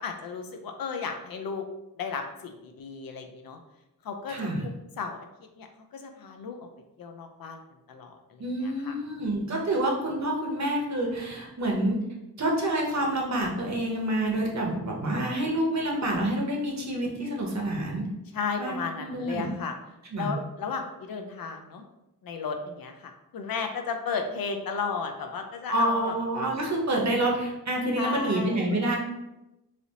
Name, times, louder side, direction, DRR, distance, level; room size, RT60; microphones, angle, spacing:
voice 1, 0.0-1.7 2.0-3.6 4.0-5.3 5.6-6.7 7.0-7.6 7.9-9.4 18.3-19.7 20.2-21.8 22.2-26.2 28.0-28.7, left 5 dB, 65° left, 5 dB, 0.5 m, -34 dB
voice 2, 4.3-4.7 8.4-12.0 12.4-18.1 18.6-19.5 20.1-20.3 25.7-29.0, right 1 dB, 45° right, -1 dB, 0.8 m, -28 dB
3.3 x 2.6 x 2.8 m, 0.93 s
wide cardioid pair, 105°, 39 cm